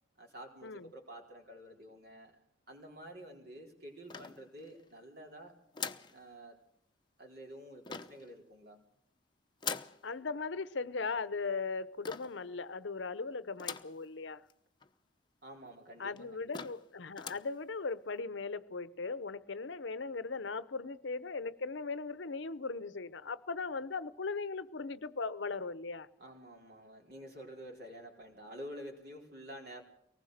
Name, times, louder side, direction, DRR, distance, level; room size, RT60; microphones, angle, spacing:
voice 1, 0.2-2.4 2.7-5.6 6.1-6.6 7.2-8.8 15.4-16.7 26.2-29.8, equal, 55° right, 4.3 m, -49 dB
sound 1, 4.1-4.8 5.7-6.2 7.8-8.3 9.6-10.0 12.0-12.4 13.6-14.0 14.5-14.6 14.8-14.9 15.7-15.8 16.2-16.3 16.5-16.9 17.1-17.5, left 6 dB, 25° left, 0.8 m, -41 dB
voice 2, 10.0-14.4 16.0-26.1, left 4 dB, 70° left, 0.8 m, -38 dB
24.0 x 19.5 x 6.6 m
head